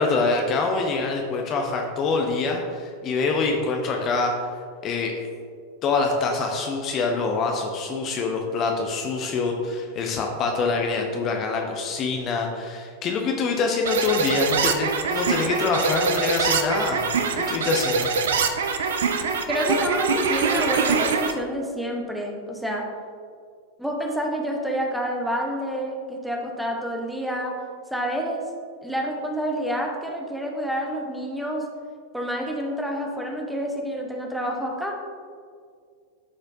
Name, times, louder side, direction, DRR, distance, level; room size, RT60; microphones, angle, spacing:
voice 1, 0.0-4.5 4.8-5.2 5.8-17.0 17.5-18.1, left 4 dB, 30° left, 2 dB, 0.7 m, -25 dB
sound 1, 13.9-21.3, right 5 dB, 60° right, 0.5 m, -24 dB
voice 2, 19.5-22.9 23.8-27.5 27.9-28.4 28.8-31.7 32.1-34.9, equal, ahead, 0 dB, 1.0 m, -28 dB
12.5 x 4.3 x 2.6 m, 2.1 s
figure-of-eight pair, 90°, 0 cm